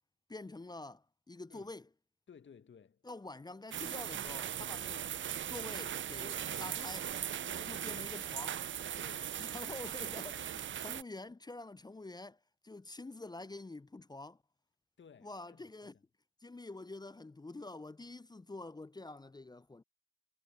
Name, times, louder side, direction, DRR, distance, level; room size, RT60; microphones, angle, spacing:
voice 1, 0.3-1.9 3.0-5.1 5.5-7.1 7.7-8.5 9.4-14.4 15.2-15.9 16.4-19.8, left 2 dB, 10° left, 0.8 m, -47 dB
voice 2, 2.3-3.1 7.5-8.5 9.0-9.4 15.0-16.0, left 6 dB, 35° left, 2.1 m, -58 dB
sound 1, 3.7-11.0, right 9 dB, 35° right, 0.8 m, -39 dB
figure-of-eight pair, 40°, 32 cm